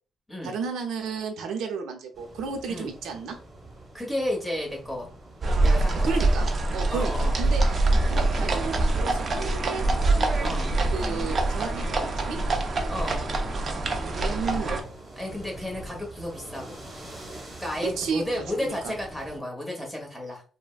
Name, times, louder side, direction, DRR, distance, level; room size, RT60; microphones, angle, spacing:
voice 1, 0.4-3.4 6.0-9.9 10.9-12.4 13.9-14.9 17.8-19.0, right 5 dB, 80° right, 5 dB, 0.6 m, -33 dB
sound 1, 2.1-19.4, right 1 dB, 15° right, 1.2 m, -46 dB
voice 2, 3.9-5.1 5.6-6.1 6.9-7.3 10.4-10.7 12.9-13.2 15.2-16.8 17.6-20.4, left 1 dB, 5° left, -1 dB, 1.0 m, -32 dB
sound 2, 5.4-14.8, right 2 dB, 40° right, 0.5 m, -24 dB
3.3 x 2.1 x 2.3 m, 0.38 s
cardioid pair, 115°, 0 cm